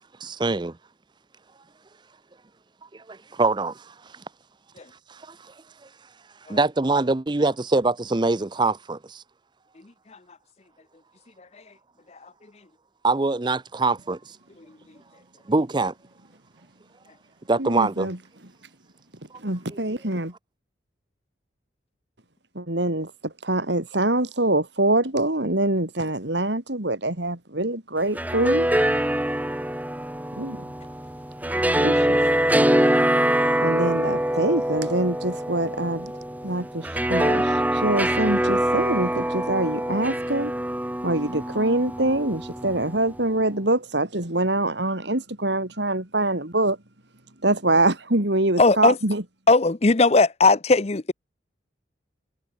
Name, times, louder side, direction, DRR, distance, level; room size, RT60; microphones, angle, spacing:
voice 1, 0.2-0.8 2.9-3.9 5.1-5.5 6.5-9.2 13.0-14.2 15.5-15.9 17.5-18.1, right 3 dB, 25° right, 0.5 m, -24 dB
voice 2, 17.6-18.2 19.3-20.3 22.6-28.8 30.4-30.6 31.5-32.2 33.6-36.1 36.4-40.5 41.0-46.8 47.4-49.2, right 2 dB, 65° right, 3.6 m, -24 dB
sound 1, 28.0-43.2, right 1 dB, 10° right, 1.8 m, -24 dB
voice 3, 48.6-48.9 49.5-51.1, left 3 dB, 35° left, 0.7 m, -18 dB
head